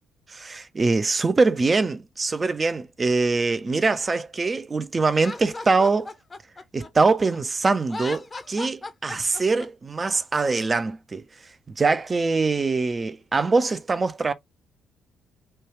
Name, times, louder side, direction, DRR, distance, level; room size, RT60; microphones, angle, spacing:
voice 1, 0.3-6.1 6.7-11.2 11.8-14.3, right 3 dB, 30° right, 0.5 m, -23 dB
Laughter, 5.1-7.4 7.8-9.7, left 3 dB, 30° left, 0.7 m, -37 dB
3.1 x 2.3 x 3.1 m
figure-of-eight pair, 45°, 0 cm